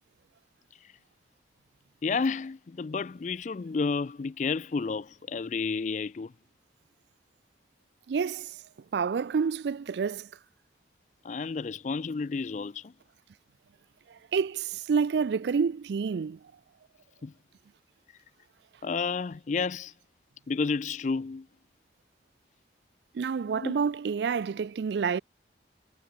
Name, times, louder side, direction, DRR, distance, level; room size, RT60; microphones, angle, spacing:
voice 1, 2.0-6.3 11.2-12.9 17.2-17.3 18.8-19.9 20.5-21.5 23.6-23.7, left 4 dB, 40° left, 0.4 m, -31 dB
voice 2, 8.1-8.6 8.9-10.3 14.1-16.4 23.1-25.2, right 6 dB, 70° right, 0.4 m, -28 dB
head